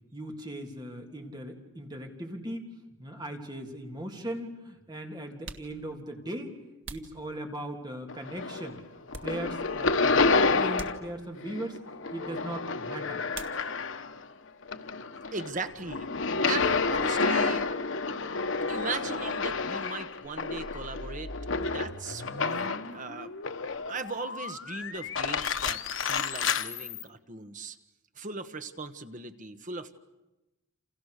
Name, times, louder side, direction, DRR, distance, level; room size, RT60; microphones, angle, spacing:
voice 1, 0.1-2.7 3.0-6.5 6.9-8.8 9.2-11.8 12.1-13.2, right 1 dB, 20° right, 2 dB, 3.2 m, -38 dB
sound 1, 5.4-7.9 8.5-9.8 10.1-10.3 10.7-11.5 13.3-14.1 14.4-15.0 15.3-17.5, right 4 dB, 65° right, 1.8 m, -48 dB
sound 2, 8.1-8.8 9.1-11.1 11.4-14.2 14.6-23.0 23.4-24.1 24.9-26.7, left 4 dB, 75° left, 1.2 m, -29 dB
voice 2, 15.3-16.1 16.5-17.6 18.7-21.3 21.7-23.3 23.9-27.8 28.2-30.0, right 4 dB, 40° right, 9 dB, 1.4 m, -38 dB
sound 3, 20.4-27.1, left 5 dB, 90° left, 1.7 m, -41 dB
29.5 x 28.0 x 6.7 m, 1.0 s
head